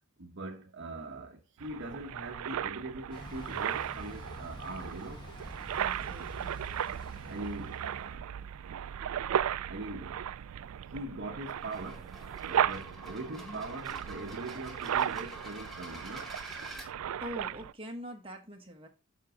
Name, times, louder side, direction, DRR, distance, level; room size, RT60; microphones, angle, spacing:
voice 1, 0.2-5.3 7.2-8.4 9.7-10.3 10.9-12.2 12.4-16.3, right 2 dB, 55° right, 1.0 m, -42 dB
sound 1, 1.6-17.7, right 9 dB, 90° right, 0.4 m, -36 dB
Thunder / Bicycle, 3.1-8.2, equal, 20° left, 1.4 m, -47 dB
voice 2, 5.7-6.5 13.4-13.6 17.2-18.9, equal, 25° right, 1.5 m, -43 dB
sound 2, 11.6-16.9, right 1 dB, ahead, 1.8 m, -47 dB
7.3 x 6.0 x 3.7 m
head